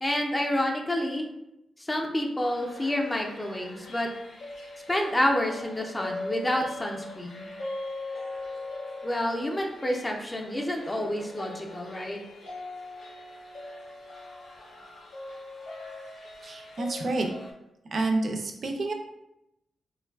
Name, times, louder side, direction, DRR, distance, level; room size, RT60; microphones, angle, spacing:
voice 1, 0.0-1.3 1.8-4.1 4.9-7.5 9.0-12.2, left 1 dB, 20° left, 1 dB, 0.4 m, -29 dB
sound 1, 2.4-17.5, left 2 dB, 80° left, 0.6 m, -41 dB
voice 2, 16.4-17.3 17.9-18.9, right 2 dB, 60° right, 3 dB, 0.4 m, -29 dB
3.2 x 2.2 x 2.2 m, 0.87 s
cardioid pair, 85°, 0 cm